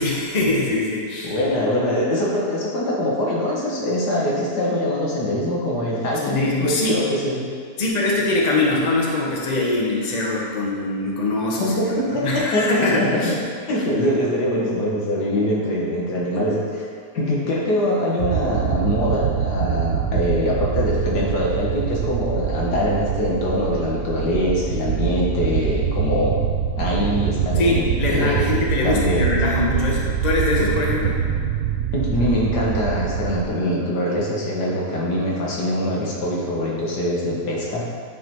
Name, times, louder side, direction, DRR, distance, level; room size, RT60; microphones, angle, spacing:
voice 1, 0.0-1.4 6.2-7.0 7.8-13.4 27.6-31.2, left 2 dB, 30° left, -3 dB, 1.1 m, -22 dB
voice 2, 1.2-7.4 11.6-13.4 13.7-16.9 17.1-26.4 26.8-29.3 31.9-37.9, left 1 dB, 80° left, -4 dB, 2.0 m, -23 dB
sound 1, 18.2-33.5, right 8 dB, 65° right, 0.8 m, -24 dB
9.2 x 5.0 x 4.6 m, 2.1 s
omnidirectional pair, 1.7 m